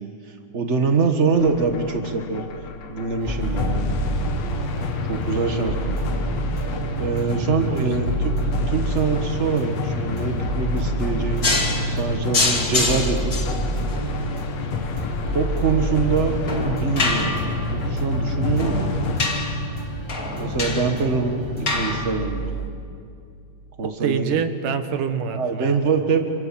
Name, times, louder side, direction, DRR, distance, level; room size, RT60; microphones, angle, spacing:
voice 1, 0.0-2.4 2.9-4.0 5.1-6.0 7.0-8.4 8.7-11.5 11.8-13.3 15.3-16.4 16.6-17.4 17.7-18.9 20.3-22.6 23.8-24.4 25.4-26.2, right 4 dB, 65° right, 5 dB, 0.7 m, -24 dB
sound 1, 1.3-19.3, left 3 dB, 60° left, 2.4 m, -29 dB
sound 2, 3.2-21.9, right 1 dB, 10° right, 3.4 m, -29 dB
sound 3, 11.4-22.7, left 2 dB, 30° left, 2.4 m, -27 dB
voice 2, 24.0-25.8, right 7 dB, 85° right, 7 dB, 3.0 m, -25 dB
28.0 x 26.5 x 7.4 m, 2.5 s
omnidirectional pair, 3.6 m